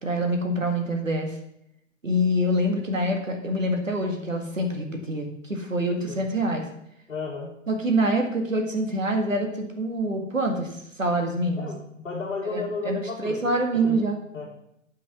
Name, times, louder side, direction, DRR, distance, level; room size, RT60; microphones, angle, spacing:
voice 1, 0.0-1.4 2.0-6.7 7.7-11.7 12.5-14.2, right 1 dB, 85° right, 4 dB, 2.0 m, -26 dB
voice 2, 7.1-7.6 11.6-13.5 13.8-14.5, left 3 dB, 75° left, -4 dB, 2.3 m, -33 dB
9.1 x 6.3 x 7.2 m, 0.77 s
figure-of-eight pair, 115°, 38 cm